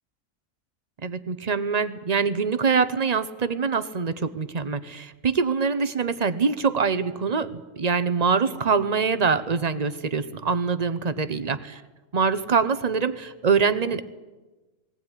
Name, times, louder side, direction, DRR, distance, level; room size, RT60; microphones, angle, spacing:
voice 1, 1.0-11.8 12.1-14.0, right 5 dB, 35° right, 13 dB, 0.8 m, -24 dB
20.0 x 17.5 x 9.9 m, 1.2 s
omnidirectional pair, 1.5 m